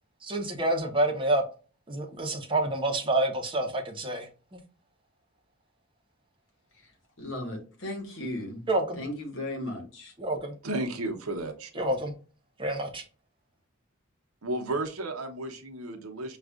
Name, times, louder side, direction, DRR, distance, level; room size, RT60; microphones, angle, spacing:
voice 1, 0.2-1.4 1.9-4.6 8.7-9.0 10.2-10.6 11.8-12.1 12.6-13.0, right 1 dB, 25° right, 0.7 m, -28 dB
voice 2, 7.2-8.7 8.9-10.1, left 1 dB, 60° left, 1.4 m, -36 dB
voice 3, 10.6-12.0 14.4-16.4, right 2 dB, 80° right, 0.8 m, -33 dB
6.2 x 2.4 x 2.4 m
head